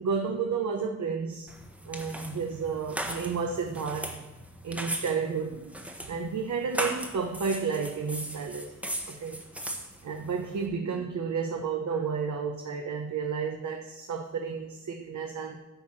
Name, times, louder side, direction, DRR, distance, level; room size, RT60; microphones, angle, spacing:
voice 1, 0.0-1.5 1.9-4.2 4.6-8.7 9.1-9.4 10.0-15.6, right 5 dB, 65° right, 3 dB, 0.9 m, -32 dB
sound 1, 1.5-10.7, right 1 dB, 5° right, 1.1 m, -38 dB
10.5 x 4.6 x 7.2 m, 1.1 s
wide cardioid pair, 165°, 32 cm